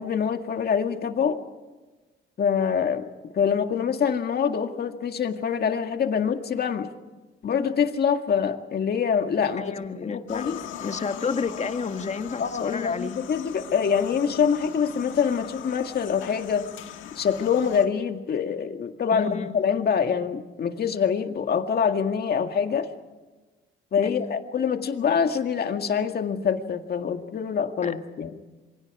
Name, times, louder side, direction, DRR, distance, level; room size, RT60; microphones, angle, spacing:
voice 1, 0.0-1.4 2.4-6.9 7.4-9.6 10.1-10.6 12.4-16.7 17.2-22.9 23.9-28.3, left 7 dB, 50° left, 1.9 m, -25 dB
voice 2, 9.6-13.2 19.1-19.6 24.0-24.3 27.8-27.9, left 5 dB, 35° left, 1.7 m, -31 dB
sound 1, 10.3-17.9, left 10 dB, 80° left, 1.7 m, -40 dB
27.5 x 23.5 x 4.9 m
cardioid pair, 90°, 20 cm